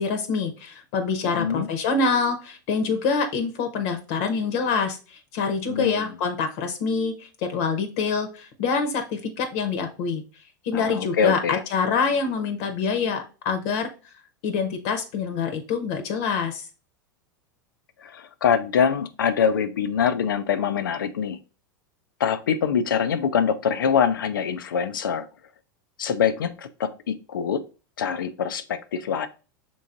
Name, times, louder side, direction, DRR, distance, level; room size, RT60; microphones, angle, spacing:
voice 1, 0.0-10.2 10.6-13.9 14.4-16.7, left 5 dB, 60° left, 7 dB, 0.9 m, -26 dB
voice 2, 1.2-1.7 5.7-6.1 10.7-11.6 18.0-21.4 22.2-25.3 26.0-27.6 28.0-29.3, left 7 dB, 85° left, 10 dB, 0.5 m, -24 dB
5.4 x 3.7 x 2.5 m, 0.33 s
hypercardioid pair, 95°, 11 cm